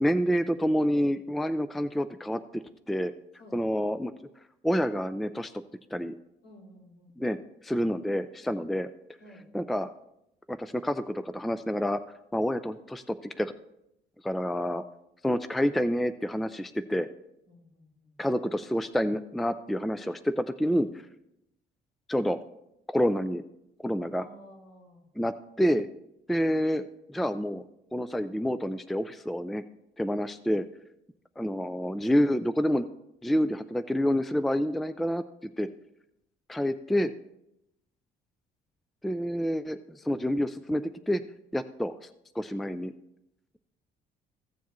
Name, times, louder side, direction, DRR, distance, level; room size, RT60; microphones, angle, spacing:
voice 1, 0.0-2.6 2.9-3.1 3.5-4.1 4.6-5.5 5.9-6.1 7.2-7.4 7.6-8.9 9.5-9.9 10.5-12.0 12.3-13.5 14.2-14.8 15.2-17.1 18.2-20.9 22.1-22.4 22.9-23.4 23.8-24.3 25.2-25.9 26.3-26.8 27.1-27.6 27.9-29.6 30.0-30.7 31.4-32.9 33.2-35.2 35.6-35.7 36.5-37.1 39.0-41.2 41.5-42.0 42.4-42.9, equal, ahead, 12 dB, 0.3 m, -28 dB
voice 2, 6.4-7.2 9.2-9.5 17.5-18.2 24.1-25.0, equal, 70° left, -3 dB, 4.3 m, -53 dB
15.5 x 7.1 x 3.0 m, 0.83 s
cardioid pair, 110°, 17 cm